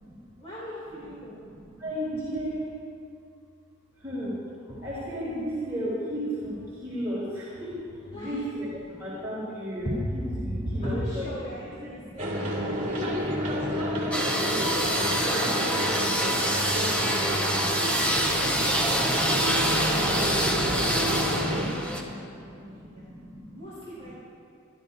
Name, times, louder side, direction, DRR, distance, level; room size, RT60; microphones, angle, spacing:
voice 1, 0.4-1.4 8.1-8.4 10.8-13.9 15.1-16.2 18.0-19.7 20.2-23.1 23.5-24.1, left 1 dB, 30° left, -9 dB, 3.1 m, -43 dB
voice 2, 1.2-2.7 3.9-11.3 12.2-12.3 12.7-15.6 15.9-17.9 19.1-21.5 21.9-23.6 24.0-24.1, equal, 15° right, -11 dB, 3.9 m, -35 dB
sound 1, 12.2-21.7, equal, 40° right, 2.4 m, -29 dB
sound 2, 14.1-22.0, equal, 5° left, 1.1 m, -26 dB
25.5 x 12.0 x 2.8 m, 2.5 s
head